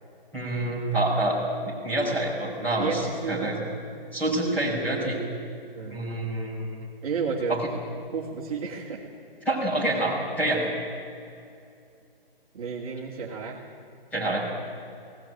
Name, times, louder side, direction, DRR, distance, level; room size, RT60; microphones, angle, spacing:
voice 1, 0.3-3.6 4.1-5.2 5.9-6.8 7.5-7.6 9.5-10.7 14.1-14.4, right 1 dB, 5° left, -7 dB, 5.4 m, -27 dB
voice 2, 2.8-3.5 5.7-6.1 7.0-7.6 8.1-9.1 12.5-13.6, right 5 dB, 35° right, -3 dB, 2.6 m, -32 dB
20.5 x 17.5 x 9.3 m, 2.5 s
hypercardioid pair, 160°, 29 cm